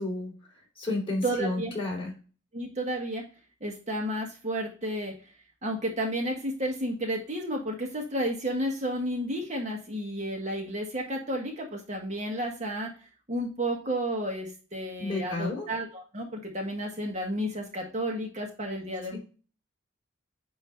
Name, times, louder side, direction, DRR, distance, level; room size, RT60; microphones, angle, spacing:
voice 1, 0.0-2.1 15.0-15.7, left 2 dB, 30° left, -3 dB, 3.8 m, -32 dB
voice 2, 1.2-1.7 2.5-3.2 3.6-5.1 5.6-12.9 13.3-19.2, right 1 dB, 35° right, 0 dB, 1.5 m, -32 dB
9.3 x 3.1 x 4.4 m, 0.36 s
head